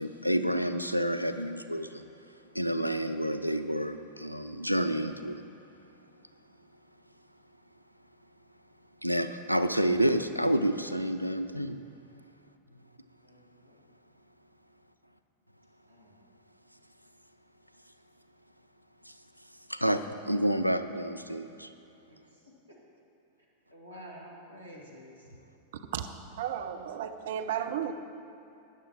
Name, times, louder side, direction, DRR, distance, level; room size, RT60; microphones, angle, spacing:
voice 1, 0.0-2.1 2.5-5.4 9.0-11.8 19.1-19.2 19.7-21.7, right 1 dB, 90° left, 10 dB, 0.5 m, -29 dB
voice 2, 13.2-13.8 15.9-16.2 22.1-22.2 23.7-25.3, equal, 85° right, -4 dB, 2.2 m, -49 dB
voice 3, 26.4-27.9, right 9 dB, 55° right, 7 dB, 0.7 m, -33 dB
13.0 x 9.7 x 4.5 m, 2.8 s
figure-of-eight pair, 90°, 0 cm